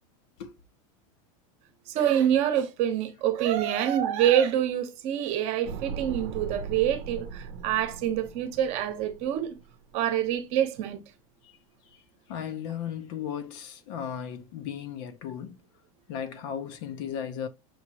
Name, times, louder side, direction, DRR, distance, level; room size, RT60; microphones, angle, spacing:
voice 1, 1.9-9.6 9.9-11.0, right 10 dB, 40° right, 1.0 m, -26 dB
sound 1, 5.6-9.9 10.2-10.3, right 5 dB, 65° right, 0.8 m, -39 dB
voice 2, 11.9-15.6 16.1-17.5, left 8 dB, 50° left, 0.7 m, -36 dB
6.0 x 2.9 x 2.9 m
supercardioid pair, 165°, 18 cm